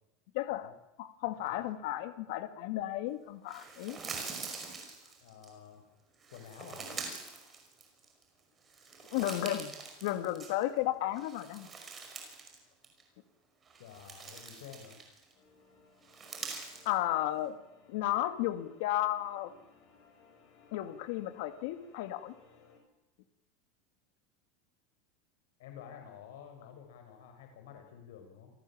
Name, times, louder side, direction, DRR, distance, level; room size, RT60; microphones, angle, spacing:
voice 1, 0.3-4.0 9.1-9.7 10.0-11.7 16.9-17.5 17.9-19.5 20.7-22.4, left 14 dB, 55° left, 9 dB, 2.2 m, -33 dB
voice 2, 1.2-1.6 5.2-5.8 6.3-7.0 13.8-15.0 25.6-28.5, left 8 dB, 80° left, 5 dB, 5.9 m, -51 dB
sound 1, 3.5-5.5 6.2-8.2 8.6-10.8 11.1-12.6 12.8-13.0 13.6-15.3 16.0-16.9, right 4 dB, 15° right, 5.4 m, -44 dB
sound 2, 15.3-22.8, left 4 dB, 30° left, 6.8 m, -62 dB
28.0 x 18.5 x 8.8 m, 0.93 s
supercardioid pair, 180°, 0 cm